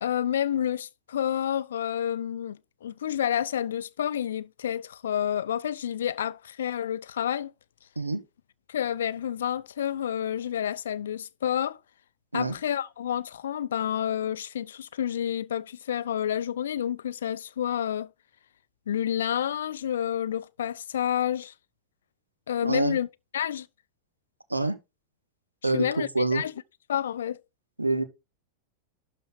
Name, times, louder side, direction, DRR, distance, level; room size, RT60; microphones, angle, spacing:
voice 1, 0.0-7.5 8.7-11.8 12.3-18.1 18.9-21.5 22.5-23.1 23.3-23.7 25.6-26.5 26.9-27.4, left 10 dB, 65° left, 0.5 m, -29 dB
voice 2, 22.6-23.0 24.5-24.8 25.6-26.4 27.8-28.0, right 3 dB, 85° right, 1.1 m, -26 dB
12.0 x 4.4 x 3.9 m
figure-of-eight pair, 90°, 0 cm